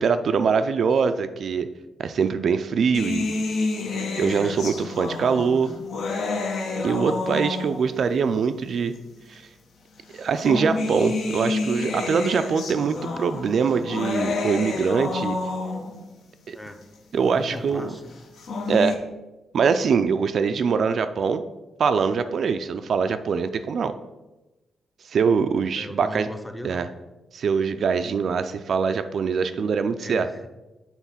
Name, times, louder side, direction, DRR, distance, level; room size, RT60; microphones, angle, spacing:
voice 1, 0.0-1.7 2.0-3.3 4.2-5.7 6.8-8.9 9.3-9.4 10.1-15.4 16.5-16.6 17.1-17.9 18.7-19.0 19.5-21.4 21.8-24.0 25.1-26.3 26.6-26.9 27.3-30.3, right 6 dB, 55° right, 9 dB, 0.3 m, -23 dB
sound 1, 2.9-8.0 9.0-9.1 10.1-16.0 18.2-18.9, left 3 dB, 70° left, 0.9 m, -29 dB
voice 2, 6.8-7.2 16.5-16.8 17.3-18.2 25.8-26.9 30.0-30.5, left 1 dB, 5° left, 6 dB, 0.5 m, -38 dB
7.1 x 3.7 x 5.6 m, 1.1 s
wide cardioid pair, 155°, 0 cm